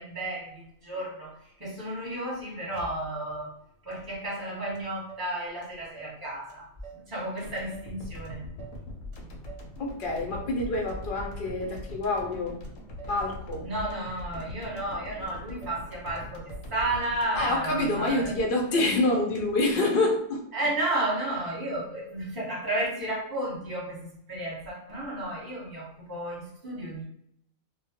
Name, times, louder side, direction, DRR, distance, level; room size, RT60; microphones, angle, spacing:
voice 1, 0.0-3.5 3.8-8.5 13.6-18.3 18.7-18.8 20.5-27.0, right 1 dB, 20° right, -6 dB, 0.9 m, -33 dB
Motor vehicle (road), 2.7-3.4 3.9-4.0 4.3-5.3 5.6-6.2 6.5-7.1 7.4-8.8 9.1-9.7 10.0-10.6 10.9-11.5 11.8-12.4 12.6-13.2 13.5-14.1 14.4-15.0 15.3-15.9 16.2-16.7 17.0-17.1 17.4-17.6 17.9-18.5 18.8-18.9 19.1-19.7, right 6 dB, 65° right, 0.9 m, -49 dB
sound 1, 7.4-19.6, left 1 dB, 75° left, 0.9 m, -42 dB
voice 2, 9.8-12.6 13.1-13.7 17.3-20.4, left 2 dB, 55° left, 0 dB, 0.6 m, -27 dB
2.3 x 2.1 x 2.8 m, 0.73 s
omnidirectional pair, 1.4 m